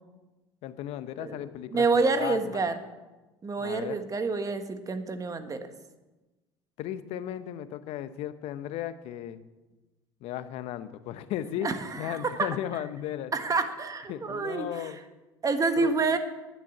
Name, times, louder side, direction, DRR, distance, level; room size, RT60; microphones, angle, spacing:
voice 1, 0.6-2.7 3.6-4.0 6.8-9.4 10.2-11.7 12.0-13.3 14.1-15.0 15.8-15.9, left 11 dB, 65° left, 13 dB, 0.8 m, -35 dB
voice 2, 1.7-2.7 3.4-5.6 11.6-12.5 13.3-14.9 15.4-16.2, right 4 dB, 30° right, 8 dB, 1.4 m, -28 dB
10.0 x 6.8 x 8.5 m, 1.1 s
hypercardioid pair, 75°, 12 cm